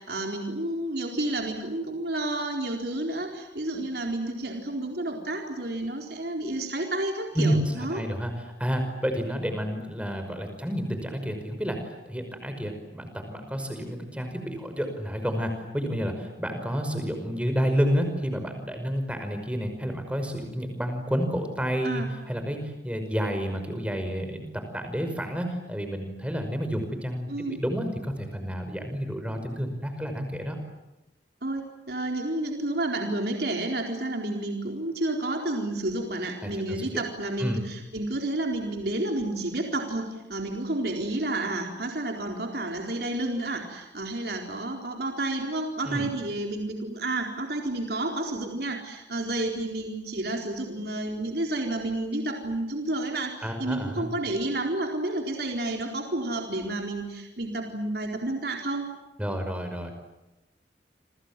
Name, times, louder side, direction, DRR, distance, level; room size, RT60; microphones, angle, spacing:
voice 1, 0.0-8.0 21.8-22.1 27.3-27.6 31.4-58.9, right 2 dB, 60° right, 2 dB, 4.1 m, -30 dB
voice 2, 7.3-30.6 36.4-36.8 37.4-37.6 45.8-46.1 53.4-54.1 59.2-59.9, equal, 5° right, 6 dB, 5.4 m, -30 dB
29.0 x 26.0 x 7.5 m, 1.0 s
head